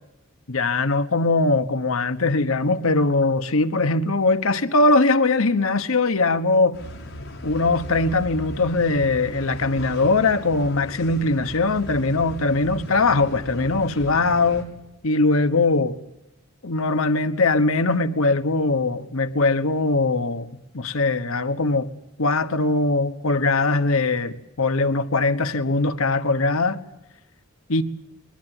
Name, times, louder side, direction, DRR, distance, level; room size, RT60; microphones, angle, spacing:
voice 1, 0.5-6.8 7.4-14.7 15.0-16.0 16.6-20.5 20.7-21.9 22.2-26.8 27.7-27.8, left 3 dB, 80° left, 1.2 m, -21 dB
sound 1, 6.7-14.6, equal, 60° left, 6.4 m, -37 dB
22.5 x 19.0 x 9.1 m
head